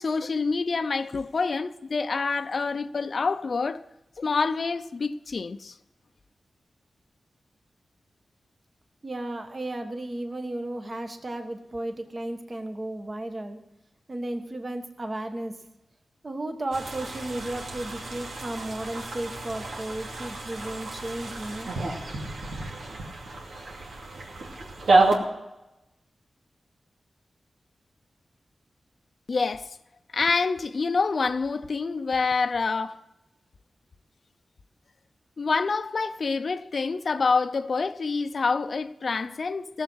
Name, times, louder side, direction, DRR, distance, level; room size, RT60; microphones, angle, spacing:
voice 1, 0.0-3.8 4.2-5.7 29.3-29.7 30.1-33.0 35.4-39.8, left 4 dB, 55° left, 0.7 m, -27 dB
voice 2, 9.0-13.6 14.1-15.5 16.2-21.7, right 1 dB, 35° right, 1.4 m, -34 dB
sound 1, 16.7-25.1, right 3 dB, 85° right, 2.6 m, -29 dB
18.0 x 7.4 x 6.3 m
wide cardioid pair, 100°, 0 cm